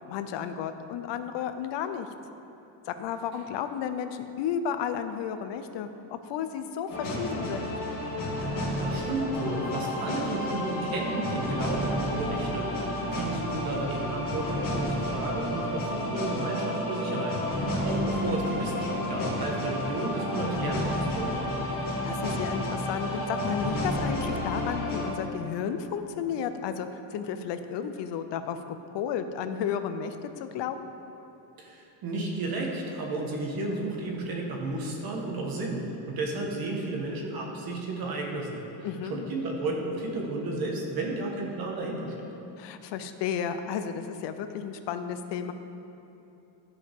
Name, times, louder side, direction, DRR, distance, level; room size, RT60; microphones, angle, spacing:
voice 1, 0.1-2.1 2.9-7.7 12.8-13.1 17.9-18.1 21.8-28.6 28.9-30.9 38.8-39.3 42.6-45.5, left 8 dB, 65° left, 9 dB, 0.6 m, -33 dB
sound 1, 6.9-25.1, left 1 dB, 45° left, 1.8 m, -31 dB
voice 2, 8.8-12.7 13.1-21.4 31.6-38.6 39.1-42.1, right 2 dB, 50° right, 0 dB, 1.4 m, -32 dB
13.0 x 5.1 x 3.6 m, 2.9 s
cardioid pair, 135°, 47 cm